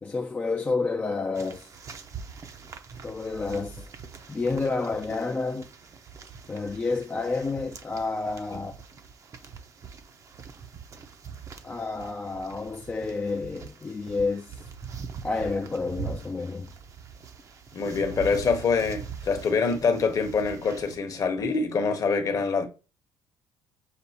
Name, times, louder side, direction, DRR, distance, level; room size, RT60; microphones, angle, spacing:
voice 1, 0.0-1.7 3.0-3.9 4.3-5.7 6.5-8.7 11.6-14.7 15.2-16.7, left 3 dB, 15° left, 0.4 m, -30 dB
sound 1, 1.3-21.0, right 6 dB, 35° right, 0.6 m, -43 dB
voice 2, 17.7-22.7, left 5 dB, 40° left, 0.9 m, -25 dB
6.7 x 2.4 x 2.8 m
cardioid pair, 120°, 9 cm